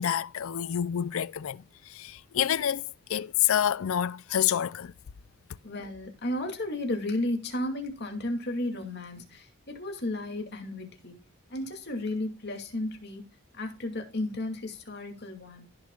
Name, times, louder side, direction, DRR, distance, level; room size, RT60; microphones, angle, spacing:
voice 1, 0.0-1.6 1.9-2.8 3.1-4.9, left 10 dB, 70° left, 0.4 m, -28 dB
voice 2, 5.6-11.1 11.5-13.2 13.6-15.6, left 1 dB, 45° left, 2.4 m, -33 dB
16.0 x 6.8 x 2.4 m
head